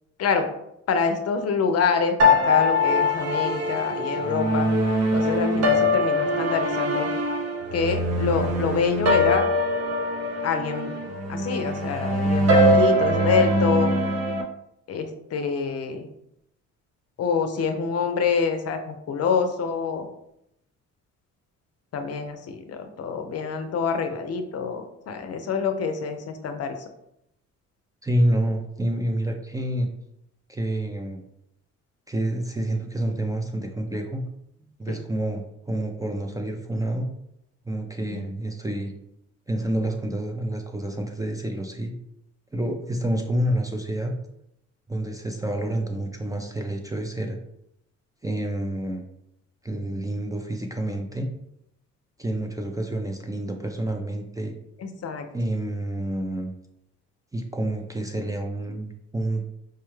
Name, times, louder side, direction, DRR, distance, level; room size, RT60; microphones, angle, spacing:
voice 1, 0.2-0.5 0.9-4.7 5.1-7.1 7.7-9.5 10.4-10.9 11.3-13.9 14.9-16.1 17.2-20.1 21.9-26.7 34.9-35.0 38.1-38.3 54.8-55.3, left 5 dB, 55° left, 7 dB, 0.6 m, -26 dB
sound 1, 2.2-14.4, left 1 dB, 55° right, 0.7 m, -22 dB
voice 2, 28.0-29.9 30.5-31.2 32.1-34.2 34.8-37.1 37.7-38.9 39.5-41.9 42.5-44.1 44.9-47.4 48.2-49.0 49.6-51.3 52.2-54.6 55.3-56.5 57.3-59.4, right 1 dB, 10° right, 3 dB, 0.4 m, -28 dB
4.6 x 2.2 x 3.1 m, 0.79 s
cardioid pair, 90°, 30 cm